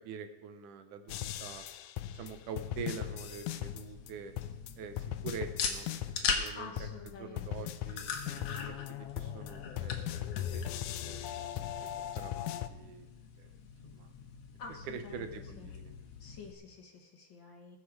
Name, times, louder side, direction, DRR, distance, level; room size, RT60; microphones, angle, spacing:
voice 1, 0.1-1.7 2.1-4.3 4.8-5.9 6.4-6.9 7.2-8.7 9.2-10.7 11.0-11.3 12.2-13.1 13.4-13.5 13.9-14.1 14.9-15.9, right 5 dB, 90° right, 8 dB, 2.6 m, -45 dB
sound 1, 1.1-4.1 4.4-6.5 6.8-12.7, left 11 dB, 85° left, 2.1 m, -39 dB
sound 2, 2.3-16.5, left 5 dB, 70° left, 2.6 m, -42 dB
voice 2, 6.5-7.7 14.6-15.2 15.6-15.7 16.2-17.8, left 5 dB, 45° left, 1 dB, 2.1 m, -49 dB
21.0 x 7.0 x 4.8 m, 1.0 s
omnidirectional pair, 3.5 m